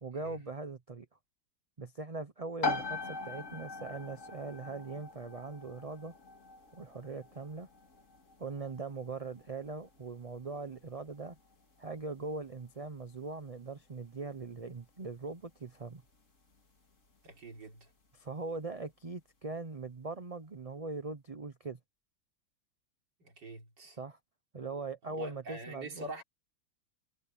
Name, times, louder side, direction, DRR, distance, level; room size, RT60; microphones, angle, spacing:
voice 1, 0.0-1.1 1.8-6.1 6.7-7.7 8.4-11.4 11.8-16.0 18.1-21.8 24.0-24.2 24.5-26.1, right 3 dB, 30° right, 0.6 m, -41 dB
sound 1, 2.6-17.1, left 3 dB, 45° left, 2.8 m, -43 dB
voice 2, 17.2-17.9 23.2-24.0 25.0-26.2, right 2 dB, 75° right, 4.3 m, -45 dB
omnidirectional pair, 1.9 m